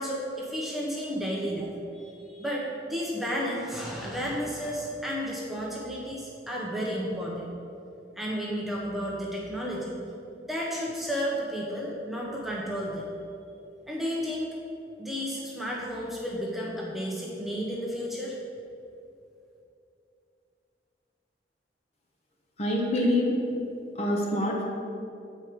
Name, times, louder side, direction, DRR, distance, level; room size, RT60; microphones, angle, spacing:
voice 1, 0.0-7.5 8.2-10.0 10.4-13.1 13.9-14.5 15.0-18.3, equal, ahead, -4 dB, 0.8 m, -32 dB
voice 2, 22.6-23.3 24.0-24.6, left 1 dB, 35° left, -1 dB, 0.9 m, -25 dB
8.1 x 4.5 x 4.9 m, 2.6 s
head